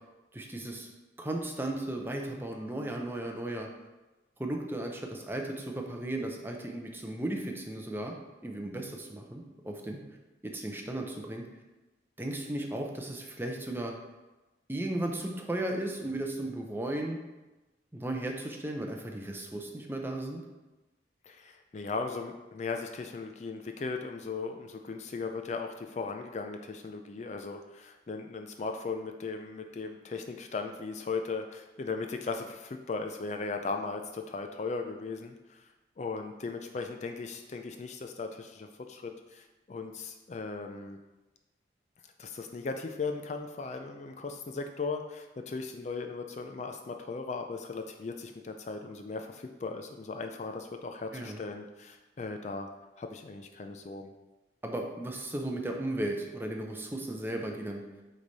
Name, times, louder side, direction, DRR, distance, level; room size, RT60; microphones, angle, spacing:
voice 1, 0.3-0.9 1.2-3.7 4.4-8.2 8.4-10.0 10.4-11.4 12.2-13.9 14.7-17.2 17.9-20.4 51.1-51.4 54.6-57.8, right 1 dB, 10° right, 2 dB, 0.6 m, -35 dB
voice 2, 21.3-35.7 36.0-41.0 42.2-52.7 53.0-54.1, left 4 dB, 40° left, 5 dB, 0.3 m, -37 dB
8.6 x 3.3 x 4.0 m, 1.1 s
head